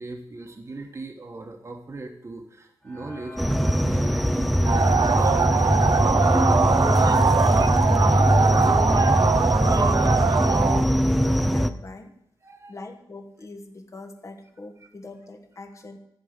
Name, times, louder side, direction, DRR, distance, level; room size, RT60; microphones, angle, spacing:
voice 1, 0.0-3.4 3.7-5.8 12.4-12.7 14.8-14.9 15.7-15.8, right 2 dB, 35° right, 2 dB, 1.2 m, -40 dB
sound 1, 2.8-8.3 8.7-8.8 9.0-9.2 9.9-10.0 10.4-10.7, left 2 dB, 15° left, 1.8 m, -42 dB
sound 2, 3.4-11.7, equal, ahead, 0.5 m, -21 dB
sound 3, 4.6-10.8, right 5 dB, 50° right, 0.5 m, -22 dB
voice 2, 7.3-12.1 12.7-16.0, left 2 dB, 35° left, 5 dB, 1.3 m, -42 dB
13.0 x 5.2 x 8.0 m, 0.75 s
wide cardioid pair, 160°, 9 cm